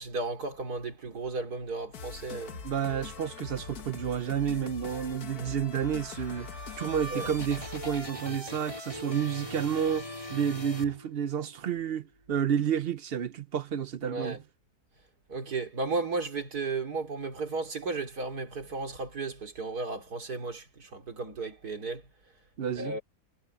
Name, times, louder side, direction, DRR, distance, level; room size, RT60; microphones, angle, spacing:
voice 1, 0.0-2.6 5.3-5.5 7.1-7.3 14.0-14.4 15.3-22.0 22.8-23.0, right 3 dB, 80° right, 3.6 m, -34 dB
sound 1, 1.9-8.2, left 5 dB, 70° left, 1.9 m, -43 dB
voice 2, 2.6-6.5 6.8-10.0 10.3-14.4 22.6-23.0, right 8 dB, 60° right, 0.6 m, -30 dB
sound 2, 5.9-11.5, equal, 20° left, 4.6 m, -41 dB
omnidirectional pair, 1.6 m